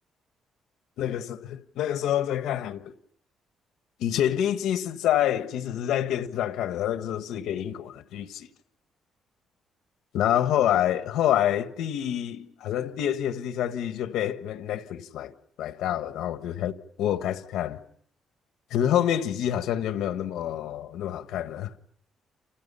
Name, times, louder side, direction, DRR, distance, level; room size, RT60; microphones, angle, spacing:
voice 1, 1.0-2.9 4.0-8.5 10.1-15.3 15.6-16.7 17.0-17.8 18.7-21.7, left 11 dB, 90° left, 1.3 m, -27 dB
29.5 x 28.5 x 5.6 m
cardioid pair, 150°, 0 cm